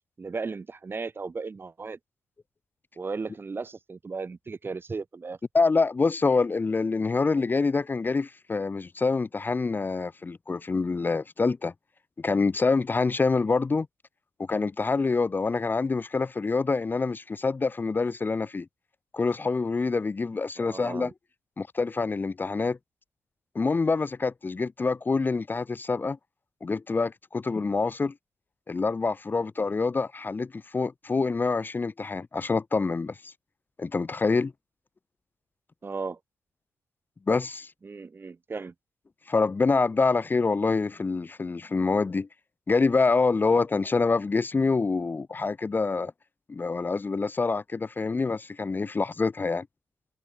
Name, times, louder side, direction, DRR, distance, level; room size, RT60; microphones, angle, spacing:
voice 1, 0.2-2.0 3.0-5.4 20.6-21.1 35.8-36.2 37.8-38.7, right 4 dB, 40° right, 4.1 m, -35 dB
voice 2, 5.5-11.7 12.2-13.9 14.5-18.7 19.1-21.1 21.6-22.8 23.5-26.2 26.6-28.1 28.7-33.3 33.8-34.5 37.3-37.7 39.3-42.3 42.7-46.1 46.5-49.7, left 4 dB, 35° left, 1.0 m, -26 dB
hypercardioid pair, 45°, 6 cm